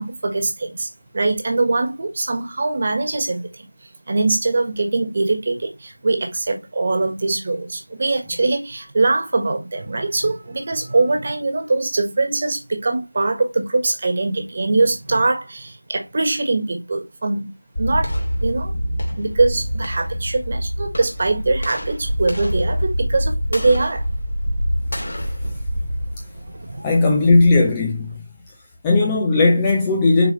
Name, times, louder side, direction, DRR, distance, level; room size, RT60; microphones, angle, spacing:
voice 1, 0.0-3.7 4.1-17.5 17.8-18.1 18.4-18.7 19.2-24.1 26.7-26.9, right 3 dB, 25° right, 1.4 m, -22 dB
sound 1, 17.8-26.9, equal, 45° left, 2.8 m, -25 dB
voice 2, 26.8-28.2 28.8-30.3, left 3 dB, 10° left, 0.5 m, -16 dB
6.8 x 4.5 x 3.1 m
figure-of-eight pair, 170°, 0 cm